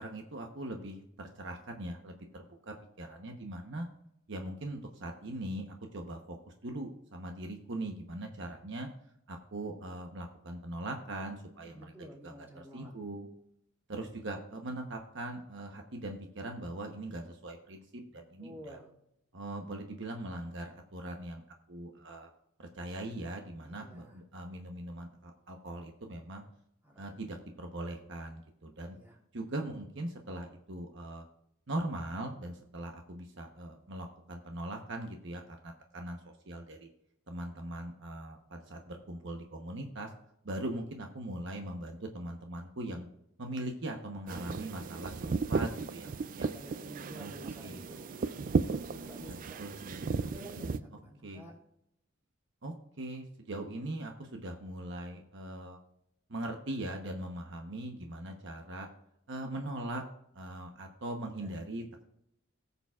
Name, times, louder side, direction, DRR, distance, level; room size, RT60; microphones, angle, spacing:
voice 1, 0.0-3.9 4.3-6.4 6.6-8.9 9.3-11.7 12.2-13.3 13.9-18.8 19.3-21.4 21.7-22.3 22.6-26.4 27.0-29.0 29.3-31.2 31.7-36.2 36.5-36.9 37.3-40.1 40.4-43.1 43.4-46.1 46.4-46.5 47.2-47.3 47.6-47.8 49.6-50.1 51.2-51.4 52.6-55.8 56.3-58.9 59.3-60.0 60.3-62.0, right 1 dB, 60° right, 3 dB, 1.0 m, -40 dB
voice 2, 11.6-12.9 18.1-18.9 23.6-24.2 26.8-27.2 28.8-29.2 46.4-49.6 50.2-51.5 61.4-61.5, equal, 10° right, -4 dB, 3.2 m, -51 dB
sound 1, 44.3-50.8, right 4 dB, 40° right, 0.4 m, -35 dB
19.0 x 6.9 x 2.4 m, 0.77 s
head